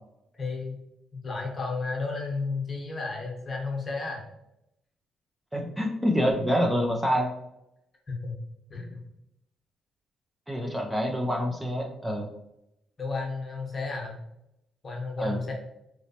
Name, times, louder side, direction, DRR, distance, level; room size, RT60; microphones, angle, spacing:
voice 1, 0.3-0.8 1.2-4.2 8.1-8.3 8.7-9.0 13.0-14.2 14.8-15.5, left 3 dB, 35° left, 0 dB, 1.0 m, -32 dB
voice 2, 5.5-7.3 10.5-12.3 15.2-15.4, equal, 10° right, 0 dB, 0.5 m, -26 dB
3.0 x 3.0 x 2.8 m, 0.84 s
cardioid pair, 90°, 0 cm